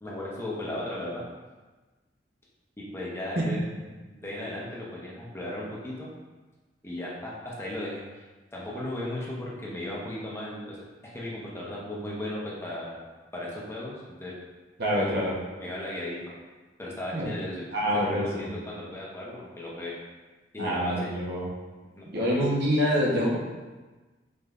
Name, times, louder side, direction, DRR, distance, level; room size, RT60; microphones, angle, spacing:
voice 1, 0.0-1.2 2.8-3.6 4.1-6.1 6.8-8.2 8.5-10.8 11.0-13.1 13.3-14.4 14.9-15.1 15.6-16.2 16.8-17.6 17.9-19.9 20.5-21.1 22.0-22.4, left 1 dB, 15° left, -5 dB, 0.8 m, -36 dB
voice 2, 14.8-15.3 17.1-17.3 17.7-18.3 20.6-21.5 22.1-23.4, equal, 60° right, -5 dB, 1.0 m, -26 dB
5.0 x 3.5 x 2.5 m, 1.3 s
head